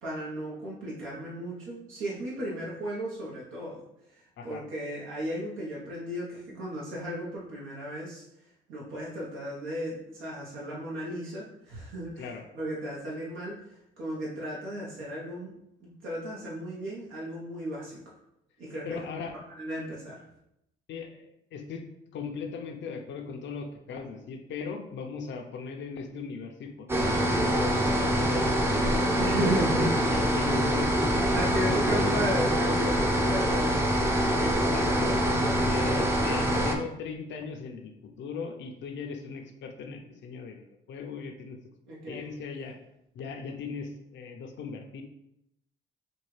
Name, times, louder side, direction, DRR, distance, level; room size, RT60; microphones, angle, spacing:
voice 1, 0.0-3.8 4.1-8.2 8.7-12.3 12.5-13.6 14.0-15.5 15.8-18.0 18.6-19.1 19.6-20.2 29.2-29.9 31.3-34.5 35.4-35.5 41.9-42.3, equal, 85° right, -6 dB, 1.0 m, -35 dB
voice 2, 18.8-19.4 20.9-21.8 22.1-29.0 29.8-31.2 31.6-32.2 34.4-41.6 42.1-42.8 43.1-45.0, left 5 dB, 65° left, 3 dB, 0.6 m, -38 dB
sound 1, 26.9-36.8, equal, 10° right, 0.5 m, -25 dB
4.3 x 2.3 x 3.2 m, 0.80 s
cardioid pair, 90°, 20 cm